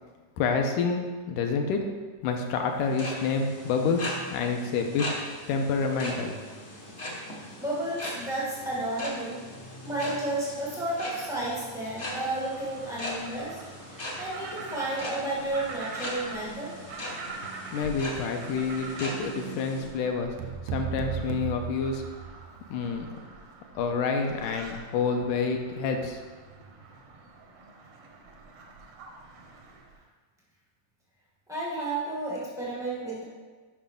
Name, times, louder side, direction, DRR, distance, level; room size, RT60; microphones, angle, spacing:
voice 1, 0.4-1.8 2.2-5.1 5.5-6.4 17.7-20.3 20.7-22.1 22.7-23.1 23.8-26.2, left 5 dB, 80° left, 3 dB, 2.2 m, -28 dB
sound 1, 2.7-19.9, left 1 dB, 60° left, 0.7 m, -39 dB
voice 2, 7.2-9.4 9.8-13.6 13.9-16.7 31.5-33.2, right 2 dB, 5° right, -7 dB, 0.3 m, -32 dB
sound 2, 12.3-30.0, right 3 dB, 70° right, 1.6 m, -45 dB
sound 3, 20.4-22.7, right 8 dB, 90° right, 1.6 m, -35 dB
9.8 x 5.7 x 3.6 m, 1.4 s
omnidirectional pair, 3.8 m